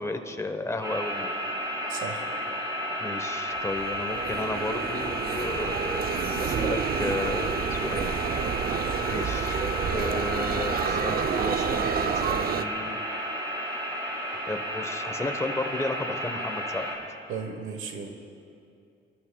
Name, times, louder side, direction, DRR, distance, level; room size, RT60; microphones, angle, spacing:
voice 1, 0.0-1.3 3.0-6.1 6.4-8.2 9.1-9.6 9.9-13.0 14.5-16.9, left 2 dB, 15° left, 7 dB, 1.0 m, -33 dB
sound 1, 0.8-16.9, equal, 20° right, 4.0 m, -32 dB
voice 2, 1.9-2.3 6.1-6.6 8.7-9.0 17.3-18.1, right 5 dB, 85° right, 6 dB, 1.2 m, -36 dB
sound 2, 3.5-12.6, right 7 dB, 50° right, 0.5 m, -29 dB
29.0 x 12.5 x 2.3 m, 2.5 s
cardioid pair, 90°, 20 cm